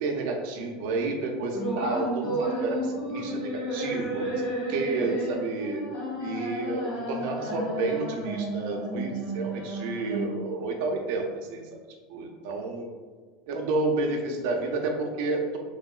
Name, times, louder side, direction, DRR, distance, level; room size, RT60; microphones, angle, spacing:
voice 1, 0.0-5.9 6.2-11.6 12.1-12.8 13.5-15.6, right 3 dB, 55° right, 2 dB, 0.4 m, -30 dB
sound 1, 1.5-10.5, right 1 dB, 65° left, 0.9 m, -32 dB
3.0 x 2.8 x 2.3 m, 1.5 s
supercardioid pair, 175°, 0 cm